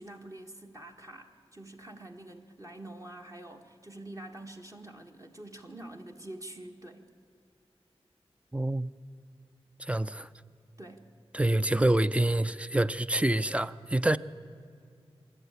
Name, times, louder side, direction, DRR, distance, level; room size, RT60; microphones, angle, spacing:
voice 1, 0.0-7.1 10.8-11.1, right 1 dB, 30° right, 1.6 m, -46 dB
voice 2, 8.5-8.9 9.8-10.3 11.3-14.2, right 1 dB, 10° right, 0.5 m, -26 dB
24.5 x 12.0 x 9.7 m
wide cardioid pair, 85°, 11 cm